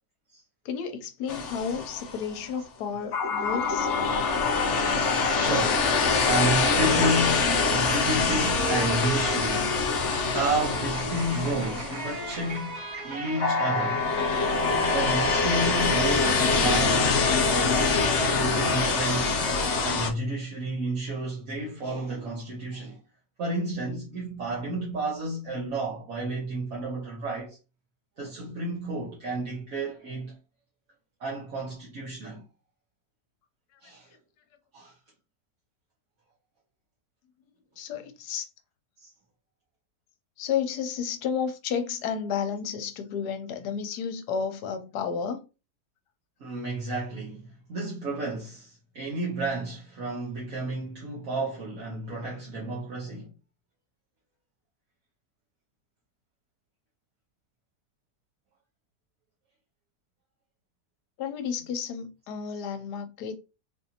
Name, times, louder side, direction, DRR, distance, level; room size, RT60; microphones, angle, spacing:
voice 1, 0.6-3.9 37.8-38.5 40.4-45.4 61.2-63.3, left 7 dB, 80° left, 1.2 m, -32 dB
sound 1, 1.3-2.3 3.1-12.6 13.4-20.1, left 4 dB, 55° left, 0.9 m, -25 dB
voice 2, 4.4-4.7 5.2-5.9 6.2-9.7 10.3-14.0 14.9-19.3 19.8-23.0 23.4-27.6 28.2-30.4 31.2-32.4 33.8-34.1 34.7-34.9 39.0-39.1 46.4-53.3, right 2 dB, 60° right, 1.4 m, -31 dB
sound 2, 6.7-19.8, right 1 dB, 80° right, 2.3 m, -36 dB
4.0 x 2.6 x 2.8 m
omnidirectional pair, 1.7 m